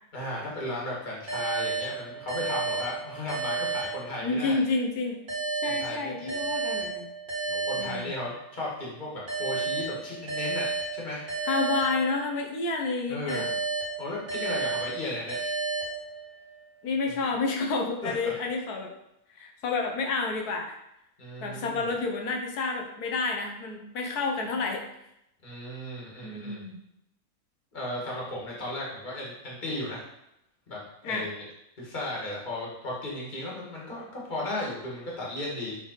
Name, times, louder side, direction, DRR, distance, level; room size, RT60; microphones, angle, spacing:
voice 1, 0.1-4.6 5.6-6.3 7.5-11.2 13.1-13.5 14.0-15.4 17.1-17.2 18.0-18.3 21.2-21.9 25.4-26.6 27.7-30.0 30.7-31.4 31.8-35.8, left 1 dB, 30° left, -4 dB, 1.9 m, -35 dB
sound 1, 1.3-4.6 5.3-8.6 9.3-12.6 13.3-16.6, right 4 dB, 40° right, 2.0 m, -32 dB
voice 2, 4.2-5.2 5.6-7.1 7.8-8.1 11.4-13.5 16.8-18.9 19.4-20.7 21.4-24.8 26.2-26.8 31.0-31.3, left 3 dB, 85° left, 2 dB, 1.5 m, -29 dB
6.8 x 4.0 x 4.0 m, 0.81 s
omnidirectional pair, 1.6 m